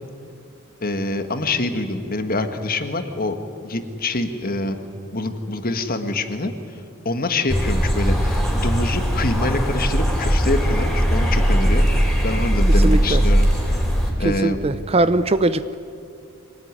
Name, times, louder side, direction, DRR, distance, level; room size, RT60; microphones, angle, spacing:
voice 1, 0.8-4.8 5.1-6.5 7.1-13.8 14.2-14.6, left 2 dB, 45° left, 8 dB, 1.8 m, -25 dB
sound 1, 7.5-14.1, equal, ahead, 4.3 m, -19 dB
voice 2, 12.8-13.2 14.2-15.8, right 2 dB, 30° right, 14 dB, 0.6 m, -21 dB
24.5 x 18.5 x 9.8 m, 2.5 s
head